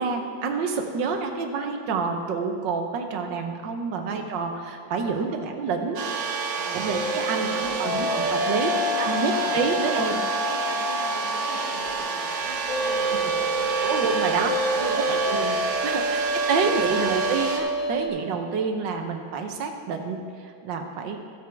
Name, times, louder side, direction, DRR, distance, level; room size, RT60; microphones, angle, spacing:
voice 1, 0.0-6.3 6.7-8.7 9.1-10.1 13.8-14.5 15.1-15.6 15.8-21.2, right 5 dB, 85° right, 5 dB, 1.5 m, -28 dB
voice 2, 4.0-4.3 4.9-5.5 6.5-8.4 8.6-14.3 14.7-15.2 15.9-16.2 16.6-17.1, right 3 dB, 35° right, 1 dB, 1.0 m, -39 dB
sound 1, 6.0-17.6, right 5 dB, 60° right, 1.3 m, -29 dB
sound 2, 6.9-11.3 12.7-18.1, left 1 dB, 55° left, 1.2 m, -28 dB
15.0 x 7.7 x 3.4 m, 2.2 s
omnidirectional pair, 1.9 m